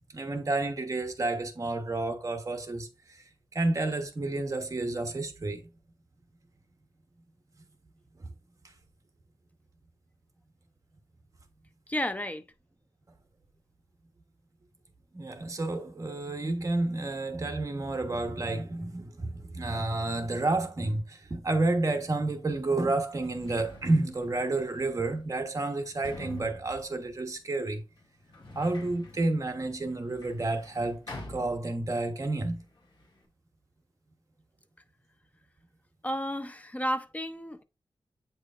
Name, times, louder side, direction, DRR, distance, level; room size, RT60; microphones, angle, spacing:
voice 1, 0.1-3.2 3.5-5.7 8.2-8.3 15.1-27.8 28.5-31.0 31.3-32.6, right 2 dB, 35° right, 1.1 m, -30 dB
voice 2, 11.9-12.4 36.0-37.6, equal, 15° left, 0.5 m, -32 dB
Sliding door, 22.3-22.4 23.0-32.2 32.4-33.3, left 1 dB, 55° left, 2.5 m, -47 dB
8.3 x 4.8 x 2.5 m
wide cardioid pair, 135°, 9 cm